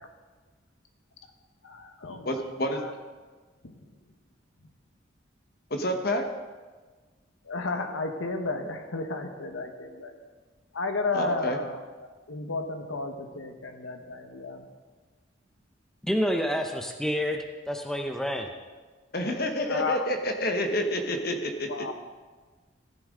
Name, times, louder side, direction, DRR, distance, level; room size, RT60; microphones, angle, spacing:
voice 1, 1.6-2.3 2.8-2.9 7.5-10.1 10.7-11.8 12.3-14.6 19.7-20.1 21.7-21.9, left 3 dB, 85° left, 5 dB, 1.2 m, -32 dB
voice 2, 2.2-2.8 5.7-6.2 11.1-11.6 19.1-21.9, left 1 dB, 50° left, 5 dB, 1.1 m, -28 dB
voice 3, 16.0-18.5, equal, ahead, 4 dB, 0.6 m, -28 dB
15.0 x 10.0 x 3.7 m, 1.4 s
head